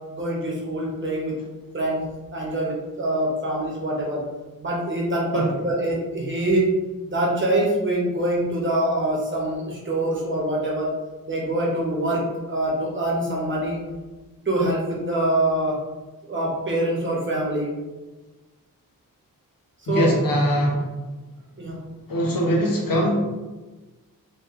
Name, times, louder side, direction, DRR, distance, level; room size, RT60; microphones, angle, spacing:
voice 1, 0.1-1.4 1.7-2.0 2.3-4.2 4.6-6.7 7.1-10.9 11.2-13.8 14.4-15.8 16.3-17.7 19.9-20.1 21.6-21.8, right 1 dB, 35° right, -3 dB, 1.0 m, -24 dB
voice 2, 19.9-20.9 22.1-23.2, equal, 80° left, -2 dB, 1.2 m, -21 dB
4.2 x 3.1 x 3.1 m, 1.2 s
wide cardioid pair, 170°, 34 cm